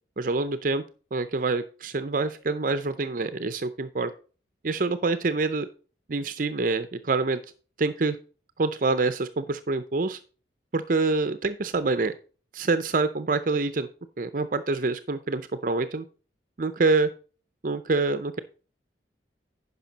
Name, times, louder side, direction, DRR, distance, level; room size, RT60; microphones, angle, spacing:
voice 1, 0.2-0.8 1.1-4.1 4.6-5.7 6.1-7.4 7.8-8.2 8.6-10.2 10.7-12.1 12.5-13.9 14.2-16.1 16.6-17.1 17.6-18.4, right 3 dB, 45° right, 12 dB, 0.5 m, -26 dB
10.5 x 5.6 x 4.0 m, 0.37 s
head